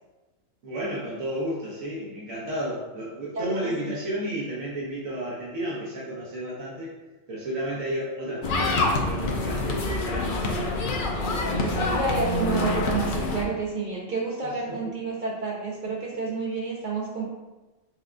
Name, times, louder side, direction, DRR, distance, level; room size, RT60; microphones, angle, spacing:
voice 1, 0.6-6.9 7.3-10.7 14.7-14.8, right 1 dB, 85° right, -6 dB, 1.3 m, -32 dB
voice 2, 3.3-3.7 11.2-17.2, right 3 dB, 50° right, -3 dB, 0.6 m, -30 dB
sound 1, 8.4-13.4, left 2 dB, 60° left, 0.5 m, -26 dB
5.8 x 2.3 x 2.5 m, 1.1 s
omnidirectional pair, 1.4 m